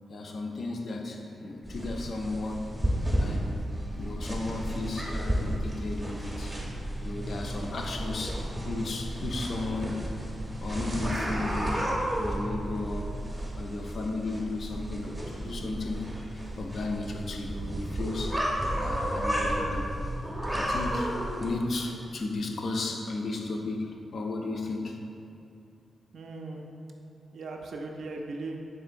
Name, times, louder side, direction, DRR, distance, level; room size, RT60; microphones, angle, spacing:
voice 1, 0.1-2.7 3.2-3.5 3.9-6.6 7.0-10.0 10.6-13.1 13.6-16.1 16.3-18.4 18.8-19.9 20.5-21.1 21.4-25.0, left 2 dB, 60° left, 2 dB, 0.4 m, -34 dB
sound 1, 0.7-20.2, left 1 dB, 75° left, 0.7 m, -52 dB
sound 2, 1.6-21.5, equal, 10° right, 0.6 m, -32 dB
voice 2, 26.1-26.6 27.3-28.6, right 3 dB, 70° right, 1 dB, 0.3 m, -38 dB
3.7 x 3.6 x 2.5 m, 2.6 s
wide cardioid pair, 110°, 0 cm